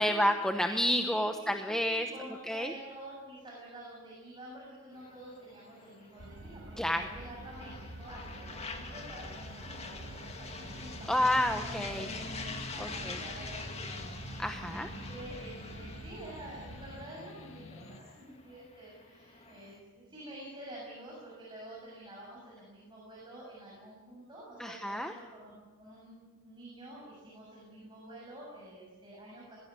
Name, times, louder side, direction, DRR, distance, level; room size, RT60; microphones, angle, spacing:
voice 1, 0.0-2.1 2.5-2.7 6.8-7.0 11.1-12.1 12.8-13.2 14.4-14.9 24.6-25.1, left 1 dB, 5° left, 5 dB, 0.9 m, -29 dB
voice 2, 1.1-11.2 11.6-29.6, right 1 dB, 20° right, -4 dB, 7.0 m, -49 dB
sound 1, 4.9-19.8, left 3 dB, 30° left, 2.2 m, -45 dB
sound 2, 6.2-17.1, right 1 dB, 60° right, 1.3 m, -48 dB
sound 3, 10.5-18.0, left 1 dB, 70° left, 1.9 m, -49 dB
20.5 x 16.5 x 9.6 m, 1.3 s
head